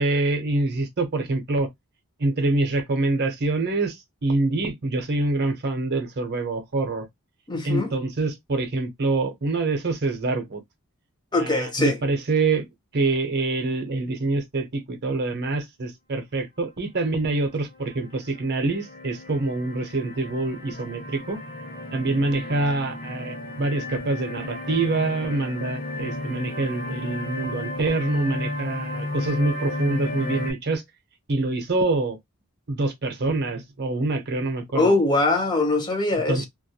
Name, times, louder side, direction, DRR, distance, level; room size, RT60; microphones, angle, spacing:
voice 1, 0.0-1.7 2.2-7.1 7.6-10.6 11.4-12.7 12.9-21.4 21.9-30.8 31.3-32.2 32.7-34.9 36.3-36.5, right 2 dB, 50° right, 0.7 m, -25 dB
voice 2, 7.5-7.9 11.3-12.0 34.7-36.5, left 2 dB, 20° left, 0.6 m, -22 dB
sound 1, 17.3-17.8 18.2-30.5, left 2 dB, 45° left, 1.2 m, -33 dB
2.3 x 2.1 x 2.7 m
head